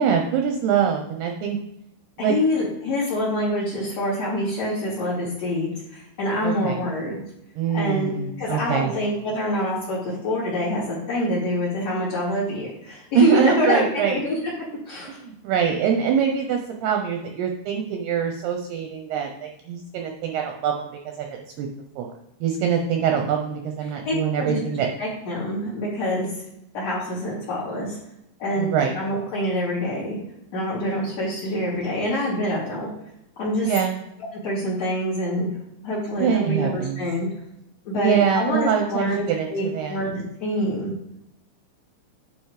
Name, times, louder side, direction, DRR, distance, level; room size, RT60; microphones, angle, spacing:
voice 1, 0.0-1.6 2.2-2.4 6.4-6.8 7.6-8.9 13.1-14.2 15.1-21.7 22.0-22.1 22.4-24.9 28.6-29.0 33.6-34.0 36.2-37.0 37.9-40.0, right 7 dB, 75° right, 3 dB, 2.6 m, -24 dB
voice 2, 2.2-7.2 7.7-14.4 14.9-15.1 24.0-24.6 25.0-26.3 26.7-28.0 28.4-30.2 30.5-32.9 33.4-33.7 34.4-35.5 35.8-37.3 37.9-40.9, equal, 35° left, -10 dB, 3.8 m, -26 dB
10.0 x 4.9 x 4.9 m, 0.82 s
omnidirectional pair, 5.4 m